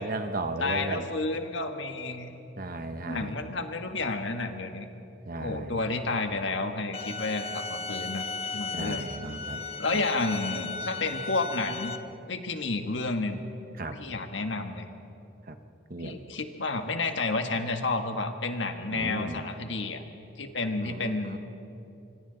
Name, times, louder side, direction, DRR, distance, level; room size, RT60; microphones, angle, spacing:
voice 1, 0.0-1.1 2.6-3.4 5.3-5.8 8.7-9.6 9.9-10.0 13.8-14.0 15.5-15.6 15.9-16.2 18.9-19.4 20.8-21.4, right 2 dB, 45° right, 8 dB, 1.1 m, -35 dB
voice 2, 0.6-2.4 3.1-4.9 5.4-8.2 8.5-9.1 9.8-12.0 12.3-13.4 13.9-14.9 16.0-20.0 20.4-21.4, left 3 dB, 65° left, 6 dB, 1.5 m, -31 dB
sound 1, 6.9-12.0, left 4 dB, 30° left, 0.9 m, -36 dB
25.5 x 25.5 x 4.0 m, 2.8 s
head